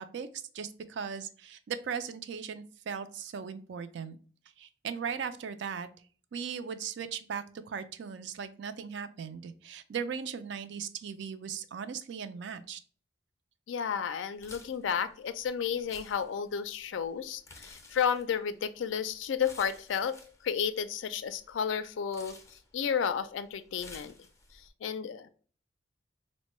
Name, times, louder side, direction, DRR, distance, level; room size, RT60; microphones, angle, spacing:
voice 1, 0.0-4.2 4.6-5.9 6.3-12.8, right 7 dB, 65° right, 10 dB, 0.3 m, -38 dB
voice 2, 13.7-20.2 20.4-22.3 22.7-24.1 24.8-25.3, left 7 dB, 75° left, 12 dB, 0.3 m, -32 dB
sound 1, 14.3-24.7, left 3 dB, 15° left, 0.5 m, -55 dB
4.3 x 2.1 x 3.0 m, 0.42 s
head